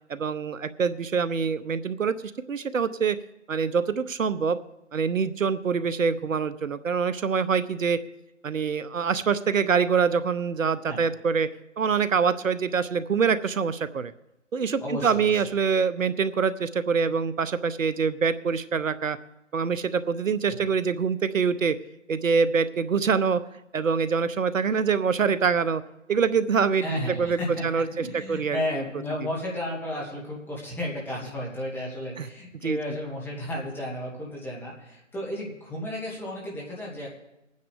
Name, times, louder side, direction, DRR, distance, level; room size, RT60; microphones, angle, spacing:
voice 1, 0.1-2.1 2.5-3.2 3.5-4.6 4.9-8.0 8.4-11.5 11.8-14.1 14.5-19.2 19.5-21.8 22.1-23.4 23.7-25.8 26.1-26.8 27.2-28.6 32.2-32.3 32.6-32.8, right 6 dB, 80° right, 14 dB, 0.8 m, -25 dB
voice 2, 14.8-15.5 20.5-20.6 26.8-37.1, left 1 dB, 5° left, -4 dB, 2.2 m, -33 dB
22.0 x 9.4 x 3.5 m, 0.93 s
figure-of-eight pair, 145°, 38 cm